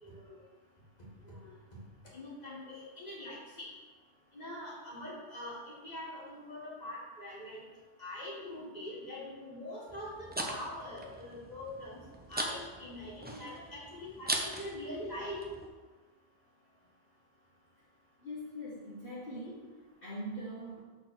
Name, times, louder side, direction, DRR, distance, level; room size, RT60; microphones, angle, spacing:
voice 1, 0.0-0.4 1.2-1.6 2.1-3.7 4.3-7.6 8.0-12.0 12.3-15.4, left 1 dB, 40° left, -5 dB, 1.9 m, -43 dB
sound 1, 9.9-15.7, right 1 dB, 10° right, 0.6 m, -40 dB
voice 2, 18.2-19.7 20.0-20.8, equal, 55° left, -8 dB, 1.5 m, -42 dB
6.5 x 4.0 x 6.2 m, 1.3 s
omnidirectional pair, 1.1 m